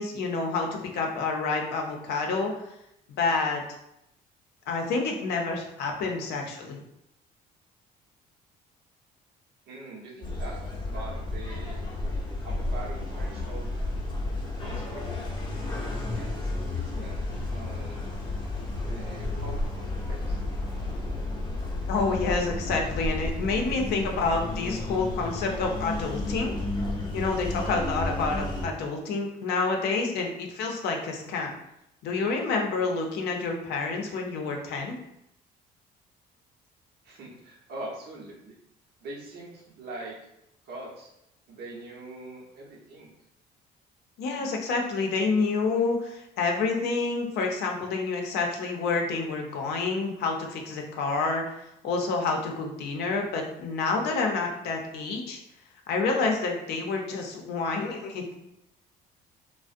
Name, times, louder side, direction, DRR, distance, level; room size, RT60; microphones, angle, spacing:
voice 1, 0.0-2.6 3.2-3.6 4.7-6.8 21.9-26.6 27.1-31.5 32.0-34.9 44.2-51.4 51.8-55.4 55.9-58.4, left 4 dB, 75° left, 2 dB, 0.5 m, -28 dB
voice 2, 9.7-10.6 10.9-11.8 12.4-13.7 14.6-15.3 15.8-17.2 17.5-18.2 18.8-20.4 37.0-38.5 39.0-40.2 40.7-41.1 41.5-43.1, right 2 dB, 70° right, -2 dB, 0.7 m, -43 dB
sound 1, 10.2-28.7, left 2 dB, 25° left, 0.6 m, -32 dB
2.4 x 2.0 x 2.5 m, 0.81 s
cardioid pair, 110°, 17 cm